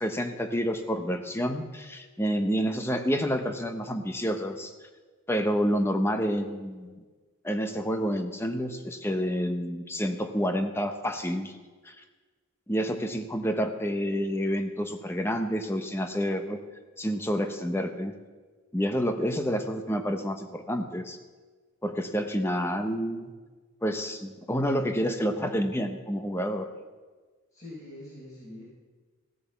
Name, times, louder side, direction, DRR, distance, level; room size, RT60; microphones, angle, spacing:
voice 1, 0.0-4.7 5.3-7.0 7.4-11.6 11.8-12.0 12.7-16.6 17.0-18.1 18.7-21.2 21.8-23.3 23.8-26.7, equal, 10° left, 6 dB, 0.8 m, -29 dB
voice 2, 27.5-28.6, left 1 dB, 35° left, -8 dB, 4.3 m, -44 dB
16.0 x 7.1 x 7.0 m, 1.4 s
head